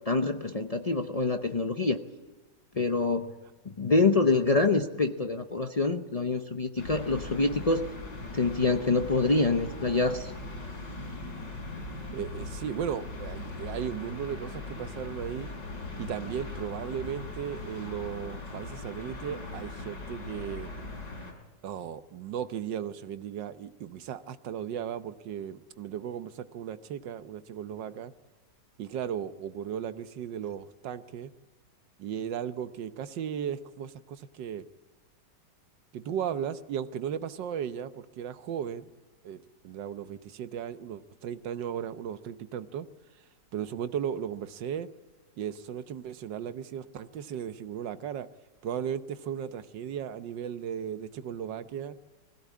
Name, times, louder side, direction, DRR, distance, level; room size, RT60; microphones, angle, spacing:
voice 1, 0.1-2.0 2.8-3.3 3.6-7.9 8.3-10.3, left 3 dB, 50° left, 5 dB, 0.4 m, -26 dB
sound 1, 6.8-21.3, left 2 dB, 90° left, 4.6 m, -40 dB
voice 2, 12.1-15.5 16.0-20.7 21.6-28.1 28.8-31.3 32.0-34.7 35.9-38.9 39.2-42.9 43.5-44.9 45.4-48.3 48.6-52.0, right 9 dB, 85° right, 12 dB, 1.6 m, -36 dB
21.0 x 16.0 x 8.5 m, 1.3 s
omnidirectional pair, 1.9 m